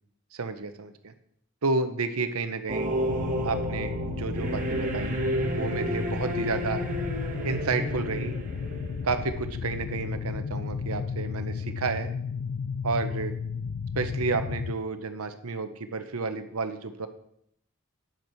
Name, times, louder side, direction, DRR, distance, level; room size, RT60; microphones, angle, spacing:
voice 1, 0.3-1.1 1.6-2.9 3.4-5.2 5.5-6.8 7.4-8.3 9.0-12.1 12.8-13.3 13.9-17.1, right 4 dB, 75° right, 9 dB, 0.8 m, -31 dB
sound 1, 2.7-9.2, equal, 35° right, 1.7 m, -31 dB
sound 2, 3.1-14.7, left 5 dB, 75° left, 0.5 m, -34 dB
10.5 x 8.2 x 4.5 m, 0.71 s
head